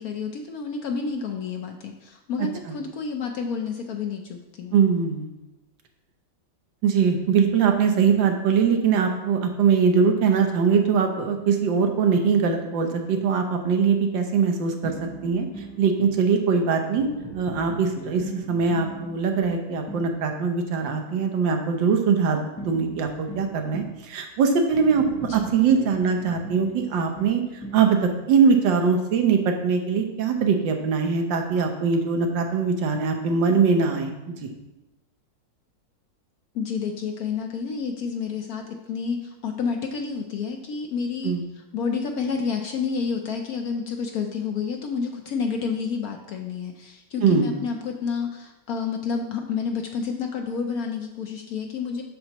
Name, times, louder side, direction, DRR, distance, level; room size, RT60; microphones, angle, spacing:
voice 1, 0.0-4.8 25.2-25.5 36.5-52.0, left 5 dB, 65° left, 3 dB, 0.9 m, -29 dB
voice 2, 4.7-5.3 6.8-14.9 15.2-15.5 15.8-17.1 17.3-25.1 25.3-27.4 27.7-34.5 41.2-41.4 47.2-47.5, right 6 dB, 80° right, 4 dB, 1.6 m, -22 dB
sound 1, 14.8-16.3 17.0-20.2 22.6-24.0 24.7-27.9, right 1 dB, 20° left, 0.4 m, -39 dB
7.5 x 6.8 x 2.9 m, 1.0 s
omnidirectional pair, 2.0 m